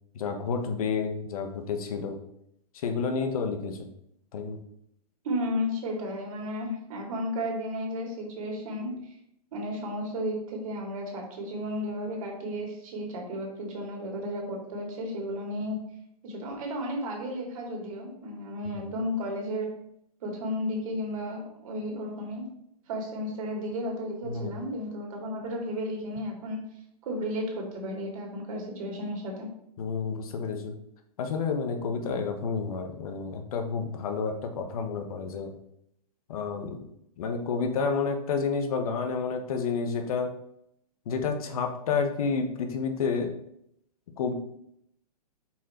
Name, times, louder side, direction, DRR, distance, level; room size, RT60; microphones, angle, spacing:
voice 1, 0.1-2.2 2.7-3.9 4.3-4.6 18.8-18.9 24.3-24.5 29.8-30.7 31.2-35.5 36.3-36.8 37.2-40.3 41.1-43.3 44.2-44.3, left 5 dB, 65° left, 6 dB, 1.2 m, -30 dB
voice 2, 5.2-9.1 9.5-15.8 16.2-19.7 20.2-22.4 22.9-26.6 27.0-29.5, equal, 60° right, 1 dB, 2.6 m, -33 dB
5.9 x 4.6 x 4.3 m, 0.75 s
hypercardioid pair, 130°, 20 cm